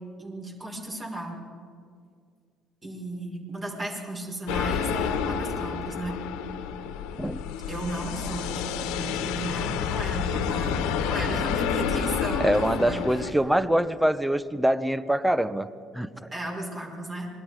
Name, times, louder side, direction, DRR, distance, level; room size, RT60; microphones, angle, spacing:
voice 1, 0.2-1.4 2.8-6.2 7.7-13.2 16.3-17.3, right 1 dB, 35° right, -1 dB, 5.4 m, -35 dB
sound 1, 4.5-13.3, left 7 dB, 75° left, 1.6 m, -29 dB
voice 2, 12.4-15.7 15.9-16.1, right 1 dB, 5° right, 14 dB, 1.0 m, -24 dB
26.5 x 21.0 x 5.0 m, 2.2 s
hypercardioid pair, 65°, 0 cm